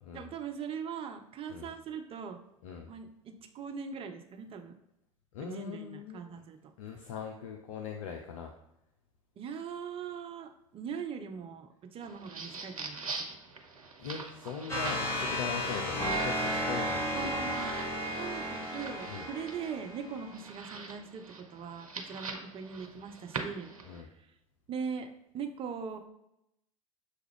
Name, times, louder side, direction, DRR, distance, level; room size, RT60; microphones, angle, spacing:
voice 1, 0.1-2.4 2.9-4.8 5.4-6.6 9.4-13.4 17.1-17.7 18.2-23.7 24.0-24.1 24.7-25.1 25.3-26.0, right 6 dB, 30° right, 6 dB, 0.6 m, -40 dB
voice 2, 5.3-6.2 6.8-8.5 14.0-17.5 19.1-19.3 23.8-24.1, left 6 dB, 70° left, 2 dB, 0.5 m, -41 dB
sound 1, 12.0-24.0, right 4 dB, 90° right, 0.5 m, -44 dB
sound 2, 14.7-20.2, equal, 15° left, 1.1 m, -33 dB
6.2 x 2.3 x 3.4 m, 0.82 s
figure-of-eight pair, 75°, 18 cm